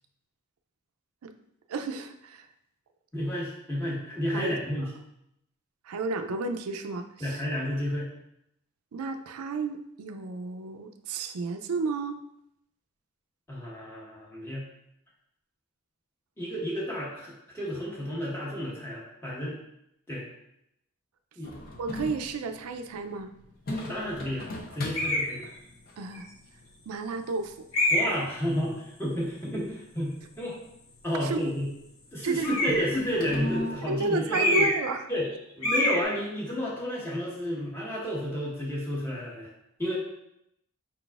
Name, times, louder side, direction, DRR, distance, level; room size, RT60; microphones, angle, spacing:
voice 1, 1.7-2.5 4.3-4.5 5.9-7.4 8.9-12.2 21.8-23.3 26.0-26.3 26.9-27.9 31.2-31.5 32.2-32.6 33.9-35.1, right 3 dB, 85° right, 7 dB, 0.4 m, -32 dB
voice 2, 3.1-4.9 7.2-8.1 13.5-14.7 16.4-19.6 20.1-20.2 21.4-21.5 23.7-25.4 27.9-30.6 31.0-31.7 32.1-34.7 35.1-35.3 35.5-39.5 39.8-39.9, equal, 10° left, -6 dB, 1.1 m, -31 dB
sound 1, 21.4-33.7, left 1 dB, 45° left, 0.7 m, -41 dB
sound 2, 24.9-25.3 26.1-26.2 27.7-28.3 32.4-33.0 34.3-34.9 35.2-35.3 35.6-36.0, left 1 dB, 75° left, 1.7 m, -25 dB
5.1 x 3.9 x 2.4 m, 0.80 s
head